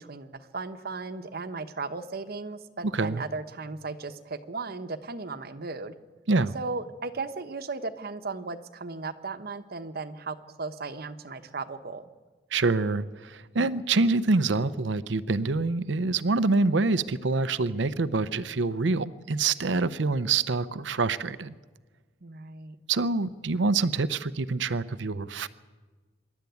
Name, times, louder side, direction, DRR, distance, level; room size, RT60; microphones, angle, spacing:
voice 1, 0.0-6.0 6.5-12.1 22.2-22.8, right 3 dB, 55° right, 10 dB, 1.1 m, -36 dB
voice 2, 2.9-3.2 6.3-6.5 12.5-21.5 22.9-25.5, right 3 dB, 70° right, 15 dB, 0.7 m, -26 dB
25.5 x 12.0 x 9.4 m, 1.3 s
head